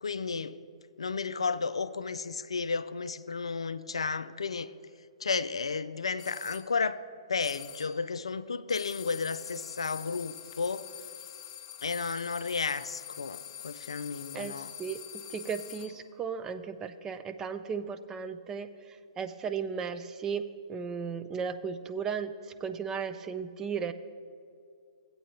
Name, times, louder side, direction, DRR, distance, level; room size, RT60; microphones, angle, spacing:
voice 1, 0.0-0.6 1.0-4.7 5.2-7.0 7.3-10.9 11.8-14.7, left 4 dB, 70° left, 14 dB, 0.3 m, -33 dB
sound 1, 6.2-6.7 7.4-8.0 8.7-16.1, left 12 dB, 40° left, 0.7 m, -45 dB
voice 2, 14.3-18.7 19.2-20.4 20.7-22.3 22.6-23.9, right 6 dB, 15° right, 10 dB, 0.3 m, -35 dB
16.0 x 8.4 x 2.8 m, 2.3 s
figure-of-eight pair, 125°, 3 cm